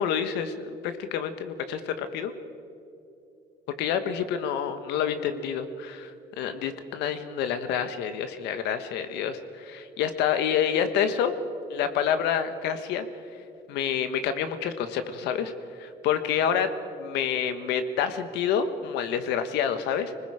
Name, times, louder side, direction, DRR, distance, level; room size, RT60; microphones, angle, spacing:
voice 1, 0.0-2.3 3.8-11.3 11.7-13.0 13.7-15.5 15.8-16.7 17.0-20.1, left 8 dB, 90° left, 9 dB, 1.4 m, -28 dB
26.0 x 20.0 x 5.0 m, 2.7 s
cardioid pair, 110°, 17 cm